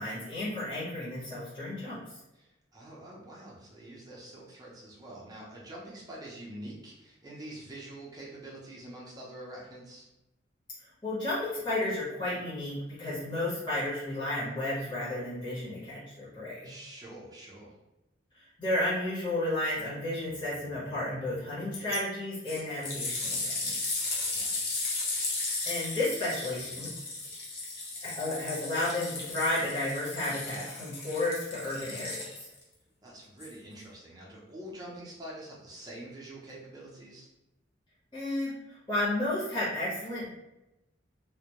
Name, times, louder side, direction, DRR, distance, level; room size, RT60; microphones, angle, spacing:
voice 1, 0.0-2.2 11.0-16.7 18.3-24.1 25.6-26.9 28.0-32.5 38.1-38.5 38.9-40.3, left 1 dB, 25° left, -10 dB, 0.8 m, -32 dB
voice 2, 2.3-10.1 16.6-17.7 24.3-24.8 33.0-37.3, right 1 dB, 20° right, -5 dB, 0.6 m, -46 dB
sound 1, 21.7-22.0 22.5-32.6 33.4-33.5, left 3 dB, 50° left, 0.6 m, -35 dB
2.2 x 2.0 x 2.8 m, 0.95 s
head